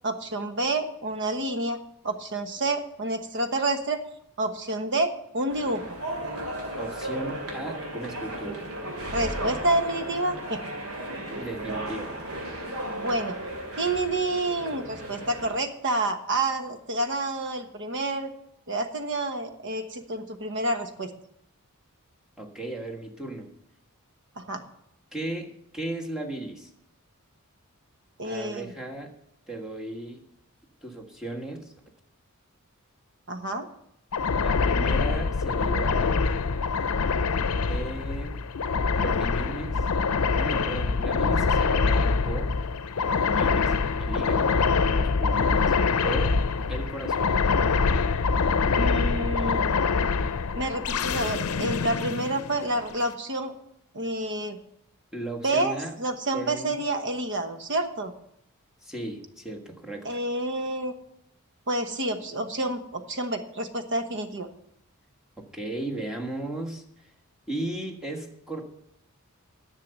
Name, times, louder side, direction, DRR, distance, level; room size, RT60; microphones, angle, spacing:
voice 1, 0.0-1.8 2.0-4.0 4.4-5.8 9.1-10.6 13.0-13.4 13.8-18.3 18.7-21.1 24.4-24.6 28.2-28.7 33.3-33.7 44.3-44.4 48.7-49.6 50.5-53.5 53.9-54.6 55.4-58.1 60.0-60.9 61.7-64.5, right 2 dB, 55° right, 7 dB, 1.1 m, -28 dB
sound 1, 5.5-15.6, right 1 dB, 80° right, 2.5 m, -35 dB
voice 2, 6.7-8.6 11.4-12.2 22.4-23.5 25.1-26.7 28.2-29.1 29.5-30.2 30.8-31.7 34.4-36.2 37.7-38.3 38.9-39.8 40.4-42.5 43.0-44.5 44.9-45.7 46.0-46.4 46.7-47.4 55.1-55.9 56.3-56.8 58.8-60.1 65.5-66.8 67.5-68.6, right 2 dB, 5° right, 0 dB, 1.5 m, -36 dB
sound 2, 34.1-53.0, left 4 dB, 80° left, 0.6 m, -25 dB
10.5 x 6.8 x 8.1 m, 0.76 s
head